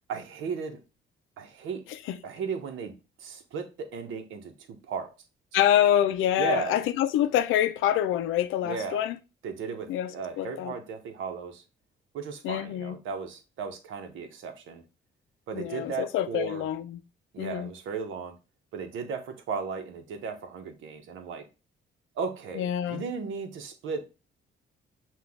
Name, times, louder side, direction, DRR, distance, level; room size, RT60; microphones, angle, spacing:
voice 1, 0.1-0.8 1.4-1.8 2.2-5.1 6.4-6.8 8.6-9.1 9.4-11.6 12.1-14.8 15.5-16.6 17.3-18.3 18.7-21.4 22.1-24.1, right 5 dB, 80° right, 0.9 m, -35 dB
voice 2, 5.5-9.2 9.9-10.7 12.4-13.0 15.5-17.0 17.4-17.7 22.6-23.0, left 11 dB, 90° left, 0.5 m, -26 dB
5.9 x 2.4 x 3.5 m
cardioid pair, 90°, 20 cm